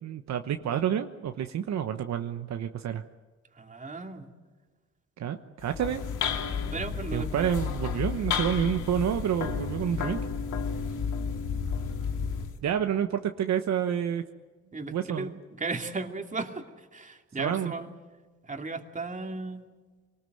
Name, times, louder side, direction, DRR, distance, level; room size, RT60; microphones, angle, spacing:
voice 1, 0.0-3.0 5.2-6.0 7.1-10.2 12.6-14.2 14.9-15.3 17.4-17.7, right 9 dB, 65° right, 7 dB, 1.1 m, -29 dB
voice 2, 3.6-4.3 6.7-7.5 14.7-15.3 15.6-16.6 16.9-17.9 18.5-19.6, right 3 dB, 25° right, 4 dB, 2.5 m, -35 dB
sound 1, 5.6-12.6, left 6 dB, 90° left, 2.2 m, -32 dB
24.5 x 19.0 x 7.9 m, 1.4 s
cardioid pair, 90°, 30 cm